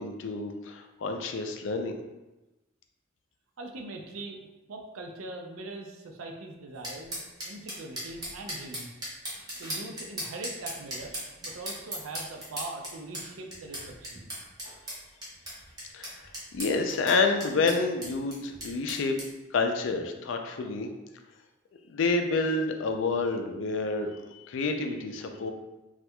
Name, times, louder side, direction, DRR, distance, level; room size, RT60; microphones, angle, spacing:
voice 1, 0.0-2.0 15.9-16.2 16.5-19.2 19.5-20.9 21.9-25.5, left 3 dB, 65° left, 5 dB, 0.4 m, -28 dB
voice 2, 3.6-8.9 9.6-11.1 11.4-14.3, right 2 dB, 90° right, 3 dB, 0.5 m, -41 dB
sound 1, 6.8-19.3, equal, 20° right, 0.9 m, -38 dB
4.2 x 2.4 x 2.2 m, 1.0 s
head